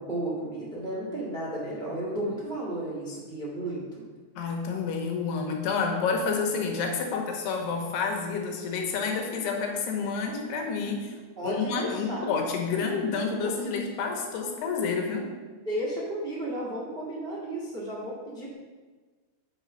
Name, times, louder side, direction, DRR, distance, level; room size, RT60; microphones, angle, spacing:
voice 1, 0.0-4.0 11.4-12.4 13.1-13.5 15.5-18.5, right 1 dB, 80° right, -6 dB, 0.5 m, -33 dB
voice 2, 4.4-11.2 11.4-15.3, left 5 dB, 75° left, 2 dB, 2.9 m, -29 dB
8.2 x 5.1 x 5.5 m, 1.4 s
omnidirectional pair, 4.9 m